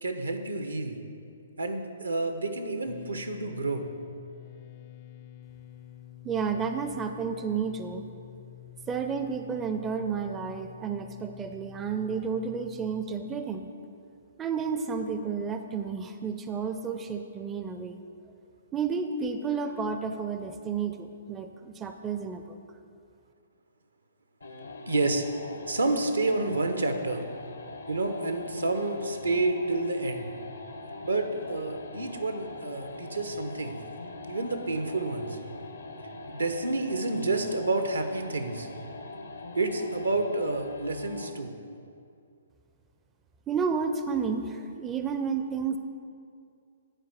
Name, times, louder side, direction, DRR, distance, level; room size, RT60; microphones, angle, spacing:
voice 1, 0.0-1.0 1.6-3.8 24.9-25.2 25.7-27.2 27.9-30.3 31.0-33.8 34.3-35.4 36.3-38.7 39.5-41.5, right 2 dB, 80° right, 6 dB, 0.8 m, -29 dB
sound 1, 2.9-13.1, left 13 dB, 35° left, 0.4 m, -49 dB
voice 2, 6.2-8.1 8.9-13.7 14.4-18.0 18.7-22.6 43.5-45.8, right 6 dB, 15° right, 7 dB, 0.4 m, -31 dB
sound 2, 24.4-41.4, left 2 dB, 75° left, 0.8 m, -42 dB
9.0 x 4.7 x 7.4 m, 2.4 s
figure-of-eight pair, 120°, 0 cm